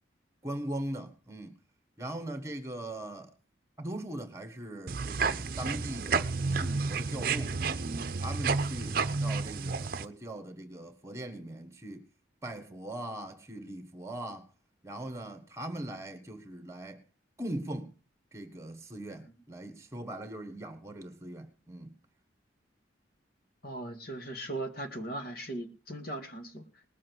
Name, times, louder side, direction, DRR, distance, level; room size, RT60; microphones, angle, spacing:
voice 1, 0.4-1.5 2.0-3.3 3.8-7.6 8.2-12.0 12.4-14.5 14.8-17.0 17.4-17.9 18.3-21.9, right 1 dB, 15° right, 1.4 m, -40 dB
sound 1, 4.9-10.0, right 4 dB, 50° right, 0.7 m, -31 dB
voice 2, 23.6-26.8, right 1 dB, 50° left, 1.8 m, -39 dB
19.5 x 7.5 x 4.6 m
head